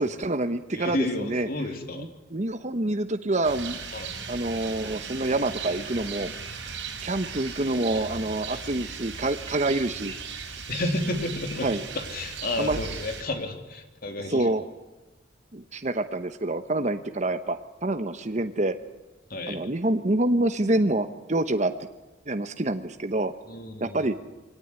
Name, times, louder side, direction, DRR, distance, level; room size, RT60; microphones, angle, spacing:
voice 1, 0.0-1.5 1.9-3.8 4.3-6.3 7.0-10.1 11.6-11.8 12.6-12.8 14.3-14.6 15.5-18.8 19.5-21.7 22.3-23.3 23.8-24.1, right 2 dB, 40° right, 8 dB, 1.0 m, -27 dB
voice 2, 0.7-2.1 3.9-4.1 10.7-14.5 19.3-19.6 23.5-24.0, left 2 dB, 50° left, 4 dB, 3.3 m, -31 dB
Rain, 3.4-13.2, right 5 dB, 70° right, 5.9 m, -37 dB
24.0 x 18.5 x 9.9 m, 1.1 s
head